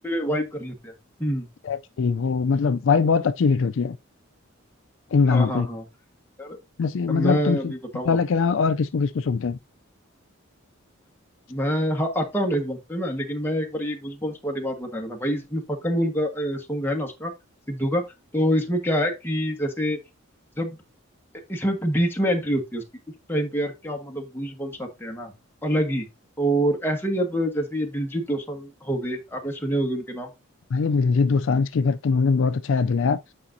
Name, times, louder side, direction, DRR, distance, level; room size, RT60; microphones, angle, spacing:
voice 1, 0.0-0.9 1.2-1.5 5.3-5.8 6.4-6.6 7.1-8.2 11.5-17.3 17.7-18.0 18.3-20.0 20.6-20.8 21.5-22.8 23.3-25.3 25.6-26.1 26.4-30.3, equal, 10° left, 1.4 m, -26 dB
voice 2, 1.7-4.0 5.1-5.7 6.8-7.7 8.1-9.6 30.7-33.2, left 5 dB, 65° left, 0.4 m, -22 dB
8.6 x 5.0 x 2.7 m
head